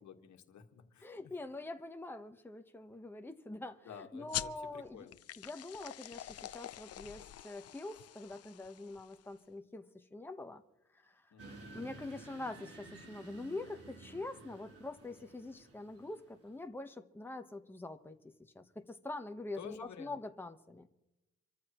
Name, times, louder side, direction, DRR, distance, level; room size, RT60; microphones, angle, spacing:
voice 1, 0.0-1.3 3.9-5.2 11.3-11.8 19.6-20.2, left 8 dB, 70° left, 5 dB, 1.8 m, -52 dB
voice 2, 1.0-5.1 5.4-10.6 11.0-11.1 11.7-18.2 18.5-20.9, left 2 dB, 5° left, 6 dB, 1.2 m, -45 dB
sound 1, 4.3-9.4, left 12 dB, 55° left, 0.6 m, -45 dB
sound 2, 11.4-16.6, right 3 dB, 50° right, 3.7 m, -54 dB
27.0 x 14.0 x 3.1 m, 0.93 s
cardioid pair, 90°, 30 cm